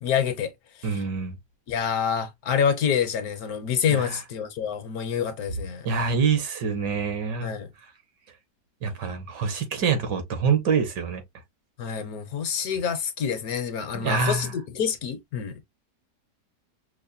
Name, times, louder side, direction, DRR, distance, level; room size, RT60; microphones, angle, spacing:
voice 1, 0.0-0.5 0.8-1.0 1.7-5.9 7.4-7.7 11.8-15.6, left 7 dB, 65° left, 1.0 m, -27 dB
voice 2, 0.8-1.4 3.9-4.2 5.9-7.6 8.8-11.2 13.9-14.5, right 5 dB, 80° right, 1.7 m, -26 dB
5.4 x 2.1 x 2.5 m
omnidirectional pair, 1.9 m